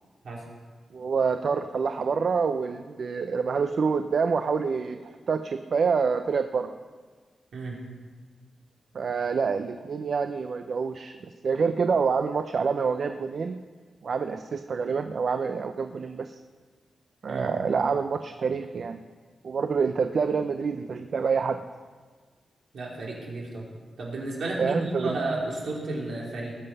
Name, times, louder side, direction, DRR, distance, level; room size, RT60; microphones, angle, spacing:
voice 1, 0.9-6.7 8.9-13.6 14.0-16.4 17.2-19.0 19.4-21.6 24.6-25.2, right 5 dB, 55° right, 8 dB, 0.5 m, -27 dB
voice 2, 22.7-23.7 24.0-26.5, right 2 dB, 75° right, -3 dB, 3.3 m, -32 dB
19.0 x 7.6 x 5.4 m, 1.5 s
wide cardioid pair, 135°, 0 cm